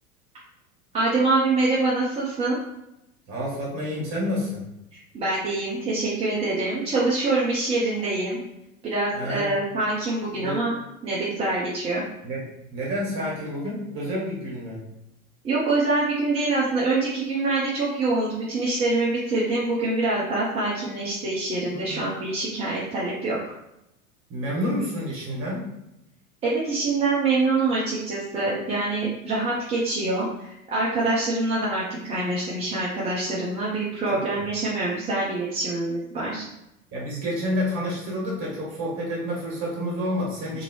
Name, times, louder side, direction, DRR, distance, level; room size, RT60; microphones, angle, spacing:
voice 1, 0.9-2.6 5.1-8.4 8.8-10.7 11.0-12.0 15.4-23.5 26.4-36.4, right 2 dB, 15° right, -7 dB, 0.5 m, -25 dB
voice 2, 3.3-4.6 9.1-9.5 10.4-10.6 12.2-12.4 12.7-14.8 21.7-22.0 24.3-25.7 34.1-34.4 36.9-40.6, equal, 30° right, -4 dB, 1.4 m, -29 dB
2.7 x 2.6 x 3.0 m, 0.87 s
figure-of-eight pair, 85°, 42 cm